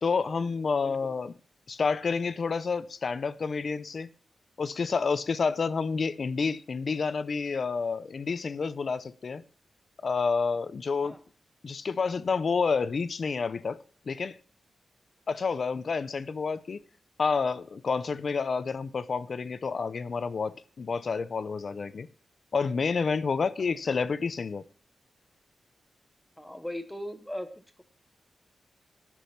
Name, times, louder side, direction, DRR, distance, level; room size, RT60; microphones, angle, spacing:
voice 1, 0.0-1.3 1.7-4.1 4.6-9.4 10.0-11.1 11.6-13.8 14.1-14.4 15.3-16.8 17.2-22.1 22.5-24.6, left 5 dB, 45° left, 0.5 m, -29 dB
voice 2, 0.8-1.1 11.0-11.2 26.4-27.5, left 1 dB, 5° left, 1.0 m, -38 dB
11.5 x 6.2 x 5.7 m
wide cardioid pair, 180°, 0 cm